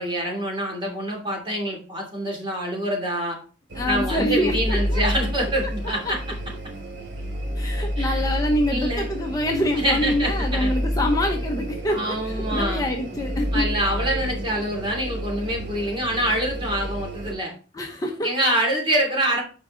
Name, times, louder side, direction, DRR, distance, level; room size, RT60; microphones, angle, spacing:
voice 1, 0.0-3.4 3.9-6.2 8.0-8.2 8.6-9.1 9.8-10.7 11.9-12.8 13.5-17.5 18.2-19.4, right 1 dB, 30° right, 0 dB, 2.9 m, -25 dB
sound 1, 3.7-17.3, equal, 75° right, 2.4 m, -29 dB
voice 2, 3.8-5.0 7.6-13.7 17.7-18.3, left 1 dB, 20° left, 1 dB, 0.9 m, -25 dB
8.8 x 5.1 x 3.9 m, 0.36 s
head